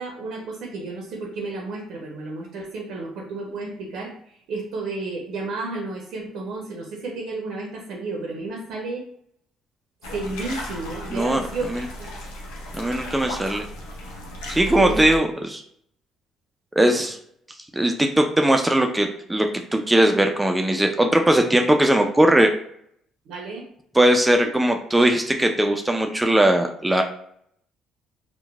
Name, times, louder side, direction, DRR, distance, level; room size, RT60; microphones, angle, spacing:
voice 1, 0.0-9.0 10.1-11.7 12.0-12.1 14.6-15.0 16.8-17.1 23.3-23.6, right 3 dB, 70° right, 0 dB, 0.5 m, -32 dB
sound 1, 10.0-15.2, left 1 dB, 85° left, 0.6 m, -35 dB
voice 2, 11.1-11.4 11.7-11.8 12.7-13.6 14.5-15.6 16.8-17.1 17.7-22.5 24.0-27.0, right 1 dB, 10° right, 4 dB, 0.3 m, -19 dB
2.9 x 2.1 x 2.3 m, 0.67 s
hypercardioid pair, 60°, 0 cm